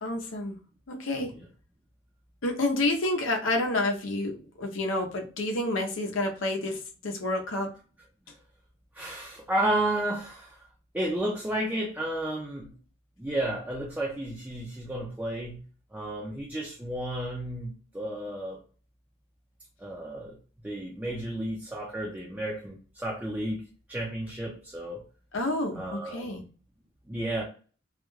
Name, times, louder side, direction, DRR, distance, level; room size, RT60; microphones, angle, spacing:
voice 1, 0.0-0.6 0.9-1.3 2.4-7.7 25.3-26.4, left 2 dB, 90° left, 3 dB, 0.6 m, -29 dB
voice 2, 8.9-10.6 10.9-12.7 13.2-15.6 15.9-18.6 19.8-20.4 20.6-23.6 23.9-25.0 25.7-26.4 27.1-27.4, right 1 dB, 10° right, -3 dB, 0.4 m, -32 dB
2.4 x 2.1 x 3.0 m, 0.38 s
head